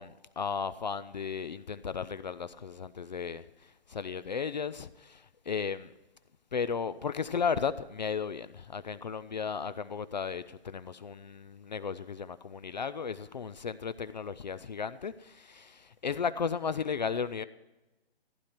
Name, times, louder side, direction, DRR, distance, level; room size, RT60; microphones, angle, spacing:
voice 1, 0.0-5.9 6.5-17.4, left 6 dB, 45° left, 0.4 m, -35 dB
15.0 x 9.9 x 4.3 m
figure-of-eight pair, 150°, 32 cm